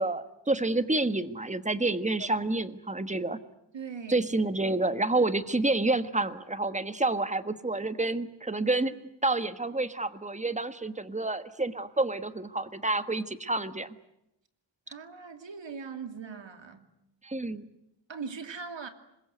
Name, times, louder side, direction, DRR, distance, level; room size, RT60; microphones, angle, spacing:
voice 1, 0.0-3.4 4.1-8.9 9.2-13.9 17.2-17.7, right 2 dB, 15° right, 12 dB, 1.4 m, -29 dB
voice 2, 3.7-4.3 14.9-16.9 18.1-18.9, right 5 dB, 80° right, 8 dB, 2.8 m, -40 dB
26.0 x 22.0 x 9.4 m, 0.85 s
wide cardioid pair, 120°, 44 cm